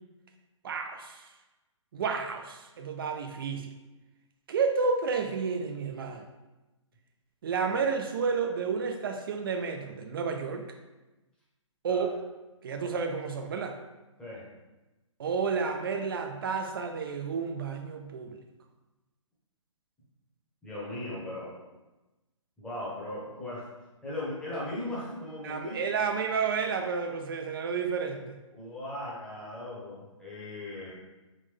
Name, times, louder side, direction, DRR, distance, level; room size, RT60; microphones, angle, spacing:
voice 1, 0.6-1.3 1.9-3.7 4.5-6.3 7.4-10.7 11.8-12.1 12.6-13.8 15.2-18.4 25.4-28.4, right 5 dB, 45° right, 4 dB, 0.4 m, -31 dB
voice 2, 20.6-21.5 22.6-23.6 24.0-25.8 28.5-30.9, left 1 dB, 5° left, -7 dB, 0.9 m, -38 dB
3.7 x 2.5 x 3.4 m, 1.1 s
figure-of-eight pair, 135°, 17 cm